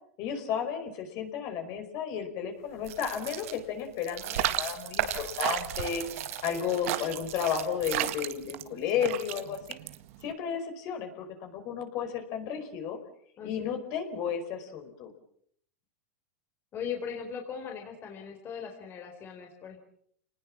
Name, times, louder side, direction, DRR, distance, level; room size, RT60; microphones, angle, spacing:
voice 1, 0.2-9.8 10.2-13.0 13.4-15.1, left 7 dB, 45° left, 6 dB, 5.0 m, -33 dB
sound 1, 2.8-8.5, right 10 dB, 80° right, 4.4 m, -37 dB
sound 2, 4.4-10.3, right 16 dB, 65° right, 1.7 m, -34 dB
voice 2, 16.7-19.8, left 7 dB, 30° left, 3 dB, 4.3 m, -39 dB
29.0 x 19.5 x 7.4 m, 0.66 s
supercardioid pair, 140°, 8 cm